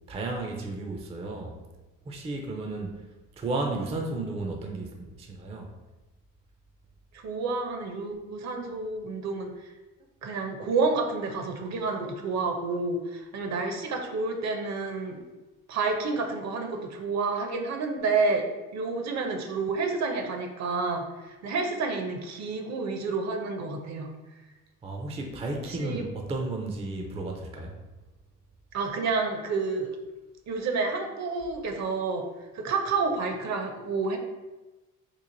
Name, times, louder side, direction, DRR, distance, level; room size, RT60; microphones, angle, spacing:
voice 1, 0.1-1.6 2.1-5.7 24.8-27.8, right 2 dB, 20° right, 2 dB, 0.4 m, -33 dB
voice 2, 7.1-9.7 10.2-15.2 15.7-18.5 18.7-24.1 25.7-26.0 28.7-29.9 30.5-32.3 32.5-34.2, right 4 dB, 55° right, 4 dB, 0.6 m, -29 dB
3.1 x 2.4 x 3.7 m, 1.1 s
cardioid pair, 110°, 33 cm